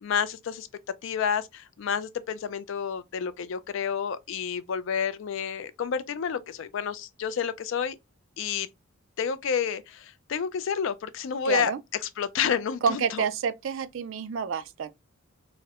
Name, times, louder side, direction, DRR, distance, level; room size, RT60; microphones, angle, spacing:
voice 1, 0.0-0.7 1.0-8.0 8.4-8.7 9.2-11.7 12.2-13.2, left 7 dB, 60° left, 0.3 m, -29 dB
voice 2, 11.4-11.8 12.8-14.9, right 6 dB, 60° right, 0.3 m, -28 dB
4.2 x 2.0 x 2.4 m
head